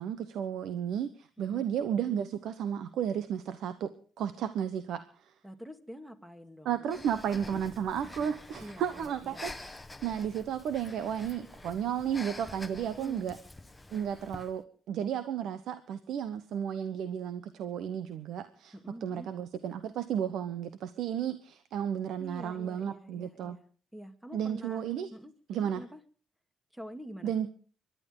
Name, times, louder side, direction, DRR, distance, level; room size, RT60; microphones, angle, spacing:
voice 1, 0.0-5.0 6.6-13.4 13.9-14.6 14.9-18.7 19.0-23.6 24.3-25.1 25.5-25.8 27.2-27.5, right 9 dB, 80° right, 12 dB, 1.0 m, -33 dB
voice 2, 1.4-1.7 5.4-7.6 8.0-9.4 12.8-13.3 18.7-19.3 22.2-23.7 23.9-26.0 26.7-27.4, equal, 5° right, 8 dB, 2.2 m, -47 dB
Breathing, 6.9-14.6, left 2 dB, 15° left, 1.2 m, -47 dB
25.0 x 12.0 x 3.9 m, 0.40 s
cardioid pair, 90°, 0 cm